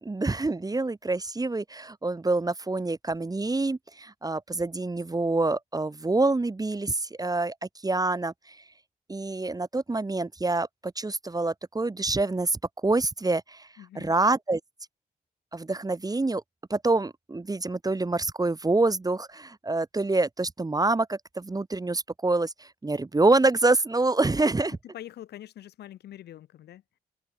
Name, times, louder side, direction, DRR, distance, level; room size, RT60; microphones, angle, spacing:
voice 1, 0.0-7.5 7.8-8.6 9.1-13.7 14.0-14.6 15.5-16.4 16.7-24.8, right 2 dB, 20° right, 0.7 m, -26 dB
voice 2, 13.8-14.1 24.7-27.0, left 12 dB, 90° left, 1.8 m, -45 dB
supercardioid pair, 40°, 17 cm